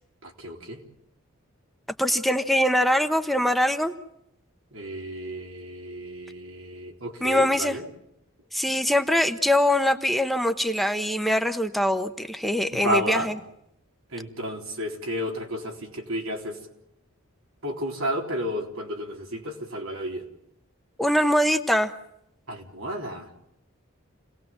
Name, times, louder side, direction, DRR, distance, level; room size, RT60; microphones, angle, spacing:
voice 1, 0.2-0.8 4.7-7.8 12.7-13.3 14.1-16.6 17.6-20.3 22.5-23.3, equal, 80° right, 2 dB, 3.9 m, -32 dB
voice 2, 2.0-3.9 7.2-7.8 8.5-13.3 21.0-21.9, left 1 dB, ahead, 7 dB, 0.9 m, -23 dB
28.5 x 19.0 x 7.4 m, 0.80 s
head